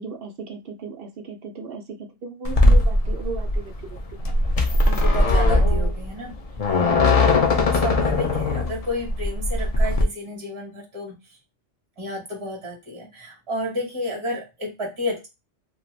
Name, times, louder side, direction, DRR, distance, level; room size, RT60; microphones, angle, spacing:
voice 1, 0.0-4.2 6.7-7.2, right 4 dB, 60° right, 4 dB, 0.7 m, -36 dB
sound 1, 2.4-10.0, left 2 dB, 60° left, 0.3 m, -19 dB
voice 2, 4.9-6.3 7.1-11.2 12.0-15.3, left 1 dB, 25° right, -1 dB, 1.0 m, -31 dB
2.5 x 2.4 x 3.1 m, 0.25 s
omnidirectional pair, 1.3 m